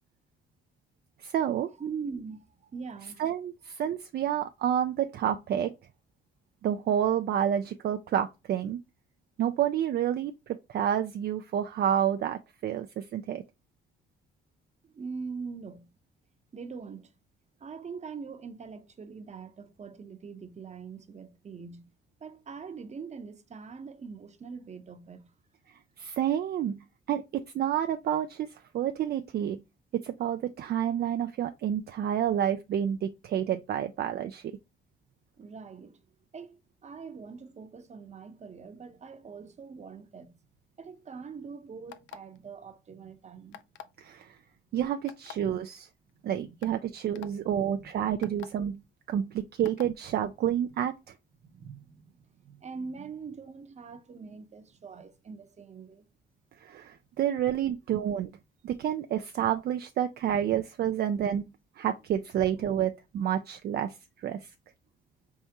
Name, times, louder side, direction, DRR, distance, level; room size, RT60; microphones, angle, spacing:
voice 1, 1.2-1.7 3.2-5.7 6.6-8.8 9.4-13.4 26.0-29.6 29.9-34.4 44.0-44.4 44.7-45.9 46.2-48.8 49.1-50.9 56.6-58.3 58.6-61.4 61.8-64.5, right 10 dB, 55° right, 0.4 m, -29 dB
voice 2, 1.8-3.2 14.8-15.9 16.5-17.1 17.6-21.9 22.2-25.3 35.4-36.0 36.3-40.4 40.8-43.6 46.1-46.6 47.3-47.9 48.2-48.4 51.4-56.1, right 5 dB, 35° right, 0.7 m, -43 dB
sound 1, 41.9-42.4 43.5-44.0 45.1-45.3 46.1-46.2 46.6-46.7 47.1-47.3 48.2-48.5 49.6-49.9, left 10 dB, 75° left, 0.4 m, -44 dB
4.1 x 3.6 x 2.9 m
cardioid pair, 90°, 20 cm